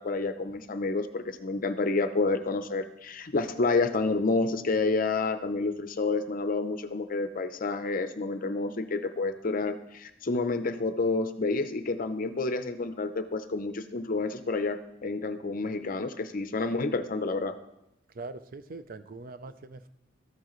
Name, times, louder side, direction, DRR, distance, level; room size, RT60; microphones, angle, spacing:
voice 1, 0.0-17.6, left 3 dB, 45° left, 10 dB, 0.6 m, -29 dB
voice 2, 18.1-19.9, right 3 dB, 50° right, 12 dB, 0.5 m, -42 dB
13.0 x 7.3 x 3.1 m, 0.86 s
head